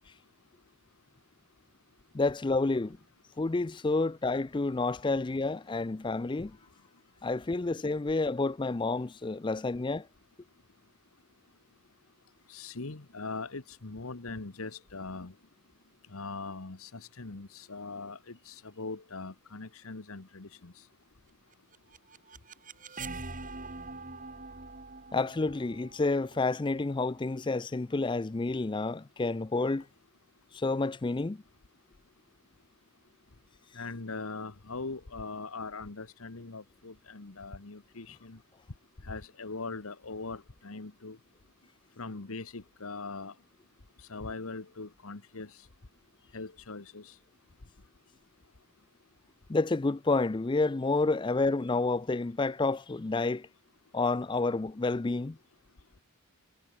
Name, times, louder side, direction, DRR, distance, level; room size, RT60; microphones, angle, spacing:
voice 1, 2.1-3.0 3.4-6.5 7.2-10.0 25.1-29.8 30.5-31.4 49.5-53.5 53.9-55.4, left 3 dB, 20° left, 0.4 m, -29 dB
voice 2, 12.5-15.3 16.1-20.7 33.7-38.4 39.0-41.2 42.0-43.3 44.1-45.6 46.3-47.1, left 3 dB, 75° left, 1.3 m, -41 dB
sound 1, 21.5-27.4, right 3 dB, 35° right, 4.2 m, -44 dB
head